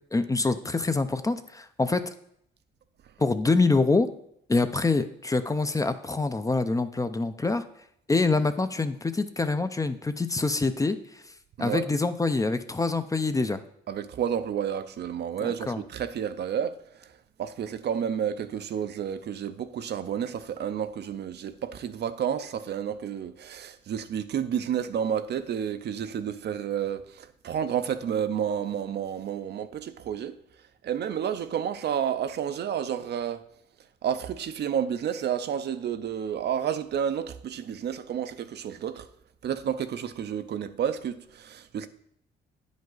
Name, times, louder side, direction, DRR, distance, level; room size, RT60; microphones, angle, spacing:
voice 1, 0.1-2.1 3.2-4.1 4.5-7.6 8.1-11.2 11.6-13.6 15.4-15.8, left 3 dB, 15° left, 0.5 m, -25 dB
voice 2, 13.9-16.8 17.4-30.3 30.8-33.4 34.0-39.1 39.4-41.9, right 8 dB, 60° right, 0.6 m, -30 dB
9.4 x 5.2 x 3.9 m
cardioid pair, 90°, 20 cm